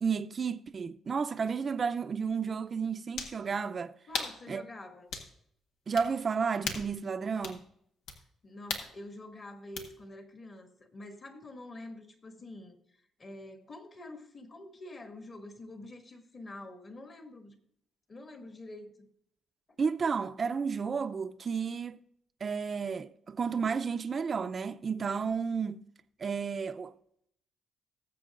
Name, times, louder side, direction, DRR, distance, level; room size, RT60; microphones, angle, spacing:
voice 1, 0.0-3.9 4.5-4.6 5.9-7.7 19.8-22.0 22.4-25.8 26.2-26.9, right 5 dB, 40° right, 0.6 m, -32 dB
sound 1, 1.5-1.6 3.1-3.4 4.1-4.4 5.1-5.3 6.0-6.1 6.6-6.9 7.4-7.6 8.1-8.2 8.7-8.9 9.8-9.9, left 4 dB, 85° left, 1.5 m, -36 dB
voice 2, 4.1-5.1 8.4-17.6 18.1-18.9, left 2 dB, 40° left, 2.1 m, -47 dB
19.0 x 7.6 x 2.5 m
cardioid pair, 90°, 0 cm